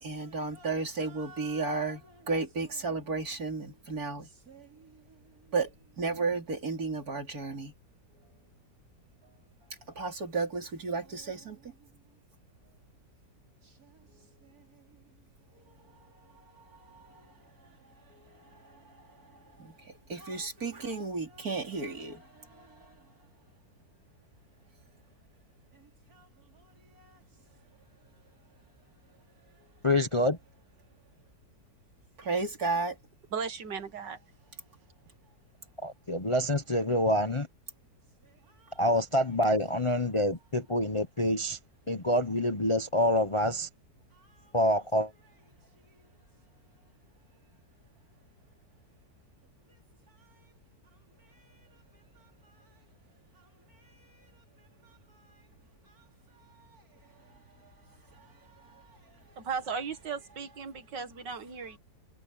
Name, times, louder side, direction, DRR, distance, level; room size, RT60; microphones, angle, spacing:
voice 1, 0.0-4.9 5.5-5.7 6.0-7.7 10.0-11.7 16.7-17.3 18.3-18.8 19.6-22.9 26.2-26.3 27.0-27.1 32.2-33.0 58.2-59.0, right 4 dB, 55° right, 3.6 m, -34 dB
voice 2, 29.8-30.4 35.8-37.5 38.8-41.6 41.9-43.7 44.5-45.1, left 1 dB, 25° left, 0.9 m, -26 dB
voice 3, 33.3-34.2 59.4-61.8, right 6 dB, 85° right, 2.3 m, -36 dB
omnidirectional pair, 1.8 m